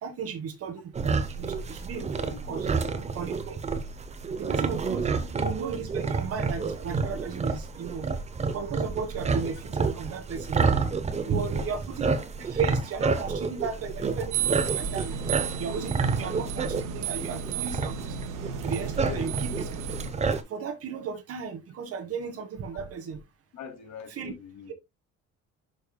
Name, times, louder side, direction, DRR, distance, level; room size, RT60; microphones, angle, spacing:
voice 1, 0.0-2.7 3.1-3.6 4.4-8.1 8.5-10.6 11.2-12.1 12.4-15.2 15.6-18.2 18.6-19.7 20.5-23.2 24.2-24.3, right 6 dB, 50° right, 1.6 m, -35 dB
sound 1, 0.9-20.4, right 4 dB, 20° right, 0.7 m, -29 dB
voice 2, 2.2-3.1 4.7-5.1 6.0-6.1 11.1-11.8 19.0-19.4 23.5-24.7, left 5 dB, 70° left, 2.3 m, -44 dB
sound 2, 14.3-20.1, right 7 dB, 85° right, 1.4 m, -33 dB
11.5 x 5.3 x 2.2 m
cardioid pair, 180°, 29 cm